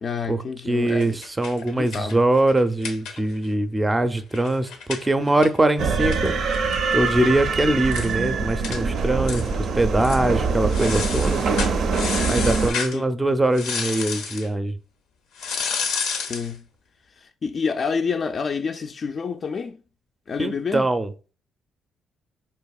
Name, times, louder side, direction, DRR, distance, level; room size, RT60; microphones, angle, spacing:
voice 1, 0.0-1.2 1.7-2.2 12.9-13.0 16.2-16.6 17.2-19.8 20.3-20.9, left 5 dB, 45° left, 0.3 m, -28 dB
voice 2, 0.7-6.3 6.9-9.5 9.7-11.4 12.3-14.7 20.4-21.1, right 1 dB, 15° right, 0.5 m, -22 dB
sound 1, 0.9-3.5 3.8-3.9 4.2-7.3 7.6-7.7 7.9-8.1 8.6-8.8 9.2-9.7 10.0-10.2 10.7-13.0 13.5-14.5 15.4-16.5, left 5 dB, 90° left, 0.6 m, -31 dB
sound 2, 5.8-12.7, right 4 dB, 65° right, 0.5 m, -24 dB
4.6 x 2.8 x 2.3 m
cardioid pair, 90°, 0 cm